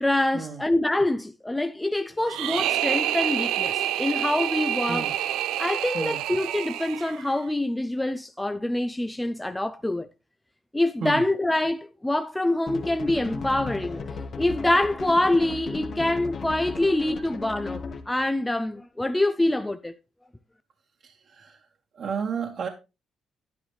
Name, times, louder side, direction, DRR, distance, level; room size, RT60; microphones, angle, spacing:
voice 1, 0.0-5.1 5.6-10.1 10.7-14.1 14.4-20.0, left 1 dB, 10° left, 0.6 m, -25 dB
sound 1, 2.3-7.4, right 12 dB, 90° right, 0.5 m, -28 dB
sound 2, 12.7-18.2, left 4 dB, 55° left, 1.6 m, -36 dB
voice 2, 21.0-21.7 21.9-22.7, right 6 dB, 55° right, 1.6 m, -32 dB
10.5 x 10.0 x 3.2 m
cardioid pair, 90°, 0 cm